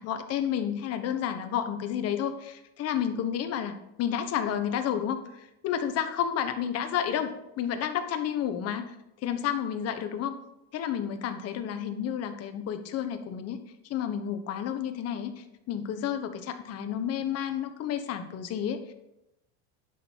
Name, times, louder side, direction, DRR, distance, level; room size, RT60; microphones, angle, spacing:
voice 1, 0.0-3.7 4.0-8.9 9.2-10.4 10.7-13.6 13.9-18.9, left 9 dB, 45° left, 8 dB, 1.4 m, -31 dB
11.0 x 6.3 x 5.6 m, 0.85 s
supercardioid pair, 120°, 34 cm